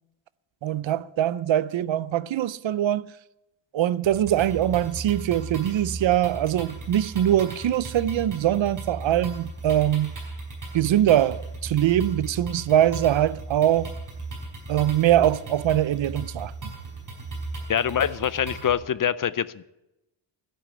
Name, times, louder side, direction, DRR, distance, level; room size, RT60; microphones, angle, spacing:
voice 1, 0.6-3.1 3.7-10.1 10.7-13.9 14.7-16.5, right 11 dB, 70° right, 0.6 m, -22 dB
sound 1, 4.0-18.7, right 2 dB, 40° right, 5.2 m, -36 dB
voice 2, 17.7-19.6, left 9 dB, 45° left, 0.4 m, -25 dB
12.0 x 10.0 x 8.6 m
wide cardioid pair, 165°, 47 cm